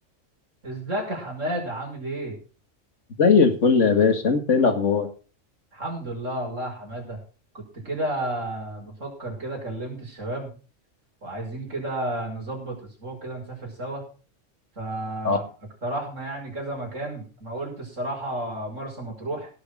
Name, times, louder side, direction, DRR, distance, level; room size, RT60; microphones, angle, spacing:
voice 1, 0.6-2.4 5.7-7.2 7.5-10.5 11.2-14.0 14.8-15.5 15.8-19.5, right 1 dB, 80° right, 0 dB, 5.7 m, -32 dB
voice 2, 3.2-5.1 15.2-15.4, left 5 dB, 70° left, 7 dB, 2.3 m, -19 dB
17.5 x 6.9 x 6.2 m, 0.37 s
omnidirectional pair, 1.3 m